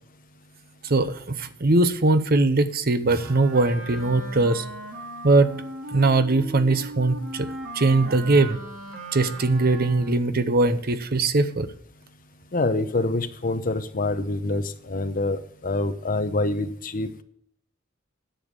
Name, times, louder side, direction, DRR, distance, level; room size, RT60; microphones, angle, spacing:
voice 1, 0.8-4.7 5.2-5.6 5.9-7.5 7.7-8.6 9.1-11.7, right 2 dB, 50° right, 12 dB, 0.8 m, -21 dB
Wind instrument woodwind instrument, 3.0-10.3, right 2 dB, 85° right, 2.5 m, -38 dB
voice 2, 12.5-17.2, left 2 dB, 45° left, 10 dB, 0.8 m, -26 dB
10.0 x 7.1 x 6.5 m, 0.65 s
head